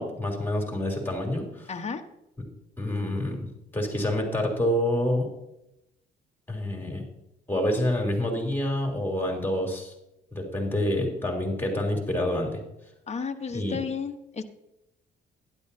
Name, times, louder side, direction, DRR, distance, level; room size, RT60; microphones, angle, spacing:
voice 1, 0.0-1.7 2.8-3.5 3.7-5.3 6.5-7.0 7.5-9.9 10.3-12.6 13.5-13.8, left 1 dB, 10° left, 1 dB, 3.4 m, -27 dB
voice 2, 1.7-2.0 13.1-14.4, left 5 dB, 35° left, 5 dB, 1.2 m, -33 dB
12.0 x 11.0 x 2.8 m, 0.85 s
cardioid pair, 90°, 20 cm